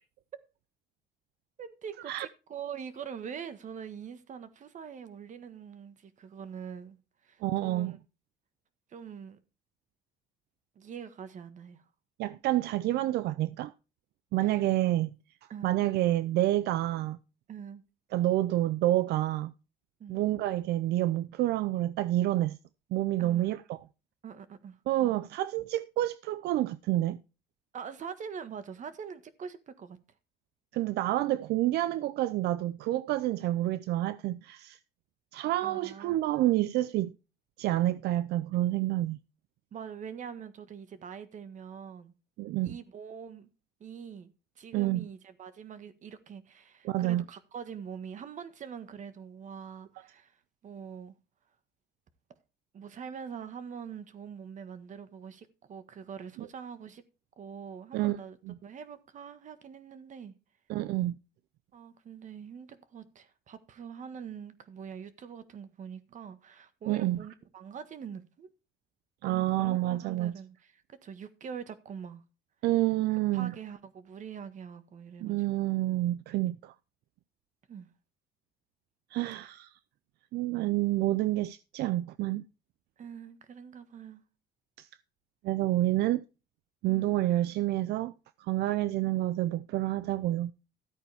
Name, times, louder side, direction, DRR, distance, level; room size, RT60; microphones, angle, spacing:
voice 1, 1.6-7.0 7.2-8.0 8.9-9.4 10.7-11.8 14.4-14.7 15.5-15.8 17.5-17.8 20.0-20.2 23.2-23.5 24.2-25.1 27.7-30.0 35.6-36.2 39.7-42.1 42.6-43.5 43.8-51.1 52.7-57.0 57.4-60.3 61.7-68.5 69.2-72.2 73.1-75.5 77.7-77.9 83.0-84.2 86.8-87.2 89.0-89.1, right 7 dB, 45° right, 1.5 m, -44 dB
voice 2, 7.4-7.9 12.2-13.7 14.3-15.1 15.6-17.2 18.1-19.5 20.1-22.6 22.9-23.8 24.9-27.2 30.7-34.8 35.3-37.1 37.6-39.2 42.4-42.8 44.7-45.1 46.8-47.2 56.4-56.5 57.9-58.2 58.5-58.6 60.7-61.1 66.9-67.3 69.2-70.3 72.6-73.5 75.2-76.7 79.1-79.7 80.3-82.4 84.8-84.9 85.4-86.2 86.8-88.1 88.4-90.5, right 15 dB, 75° right, 0.5 m, -28 dB
13.5 x 8.8 x 3.5 m
cardioid pair, 110°, 17 cm